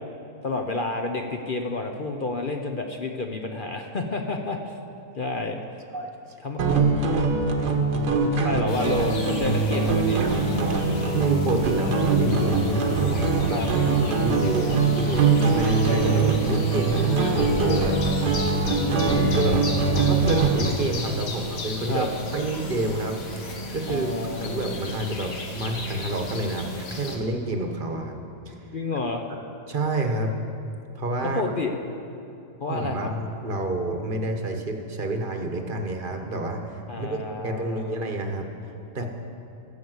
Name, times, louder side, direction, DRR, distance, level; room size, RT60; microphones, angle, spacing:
voice 1, 0.4-4.6 5.2-5.6 6.4-6.6 8.1-10.2 13.5-13.7 18.6-19.4 21.9-22.1 23.9-24.5 28.7-29.2 31.3-31.7 32.6-33.1 36.9-38.0 39.0-39.1, left 3 dB, 50° left, 4 dB, 0.6 m, -29 dB
sound 1, 6.6-20.7, right 4 dB, 75° right, 1.7 m, -22 dB
sound 2, 8.7-27.2, left 1 dB, 75° left, 1.9 m, -35 dB
voice 2, 11.1-18.1 19.3-19.6 20.0-22.1 22.3-24.1 24.4-28.2 28.5-28.6 29.7-30.3 30.9-31.4 32.7-38.5 38.9-39.0, right 2 dB, 35° right, 4 dB, 1.1 m, -28 dB
16.0 x 7.0 x 7.9 m, 2.7 s
omnidirectional pair, 1.7 m